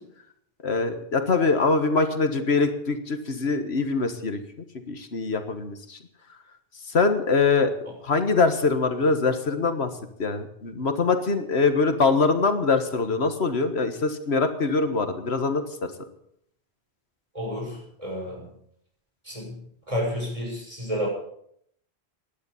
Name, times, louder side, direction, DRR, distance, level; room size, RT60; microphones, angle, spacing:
voice 1, 0.6-4.4 4.9-6.0 6.8-7.7 8.0-9.9 10.2-15.6, left 4 dB, 80° left, 8 dB, 1.7 m, -23 dB
voice 2, 17.3-18.5 19.2-19.6 19.9-21.1, equal, 30° right, -2 dB, 6.7 m, -31 dB
17.0 x 11.0 x 7.1 m, 0.70 s
omnidirectional pair, 1.1 m